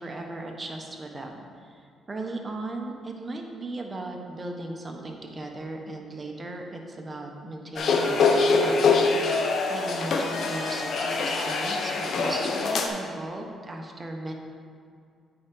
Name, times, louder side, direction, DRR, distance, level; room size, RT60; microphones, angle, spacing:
voice 1, 0.0-8.8 9.2-9.4 9.7-14.3, right 2 dB, 25° right, 2 dB, 1.1 m, -37 dB
sound 1, 7.8-12.9, left 4 dB, 60° left, 0.8 m, -24 dB
8.5 x 4.8 x 5.4 m, 2.3 s
cardioid pair, 90°, 0 cm